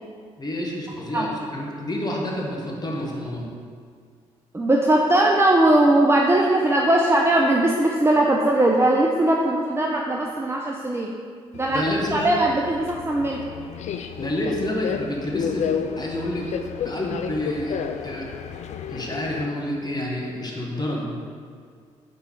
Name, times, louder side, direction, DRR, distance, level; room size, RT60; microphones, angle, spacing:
voice 1, 0.4-3.5 11.7-12.3 14.2-16.5 16.8-17.8 18.0-18.3 18.9-21.1, left 1 dB, 30° left, -2 dB, 1.7 m, -29 dB
voice 2, 4.5-11.1 11.5-13.4, right 1 dB, 15° right, -1 dB, 0.7 m, -20 dB
Subway metro underground, 11.5-19.5, left 7 dB, 55° left, 0.4 m, -32 dB
5.4 x 4.3 x 5.5 m, 2.1 s
hypercardioid pair, 45°, 14 cm